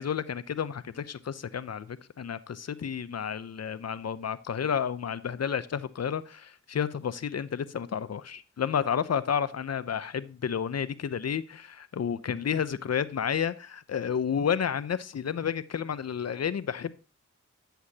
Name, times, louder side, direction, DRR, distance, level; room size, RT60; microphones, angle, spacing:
voice 1, 0.0-17.0, left 7 dB, 55° left, 0.8 m, -31 dB
11.5 x 8.0 x 2.9 m
cardioid pair, 45°, 30 cm